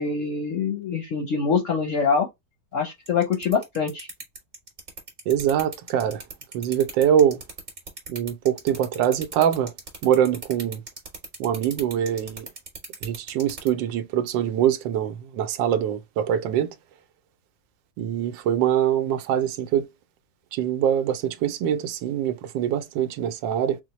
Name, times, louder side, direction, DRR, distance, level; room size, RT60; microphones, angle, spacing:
voice 1, 0.0-2.3 2.7-4.1, left 5 dB, 60° left, 0.8 m, -24 dB
sound 1, 3.1-13.7, right 3 dB, 30° right, 1.2 m, -37 dB
voice 2, 5.3-6.2 6.5-7.4 8.1-9.7 10.0-10.8 11.4-12.5 13.0-16.7 18.0-19.9 20.6-23.8, right 10 dB, 80° right, 1.2 m, -23 dB
4.1 x 2.1 x 3.0 m
omnidirectional pair, 2.0 m